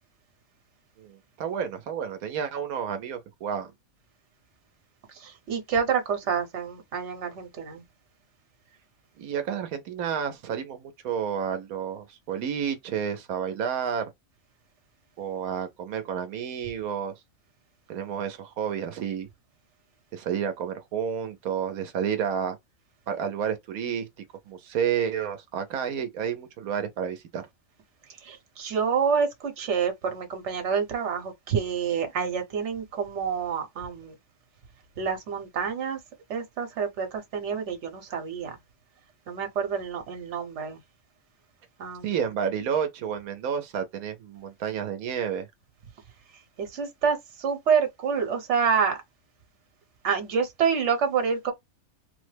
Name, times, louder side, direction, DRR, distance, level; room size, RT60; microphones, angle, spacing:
voice 1, 1.0-3.7 9.2-14.1 15.2-17.1 17.9-19.3 20.1-22.6 23.1-24.1 24.5-27.4 42.0-45.5, right 8 dB, 90° right, 1.1 m, -30 dB
voice 2, 5.1-7.8 28.2-34.1 35.0-36.0 36.3-38.6 39.3-40.8 41.8-42.2 46.6-49.0 50.0-51.5, right 6 dB, 55° right, 1.2 m, -28 dB
3.4 x 2.1 x 3.2 m
omnidirectional pair, 1.5 m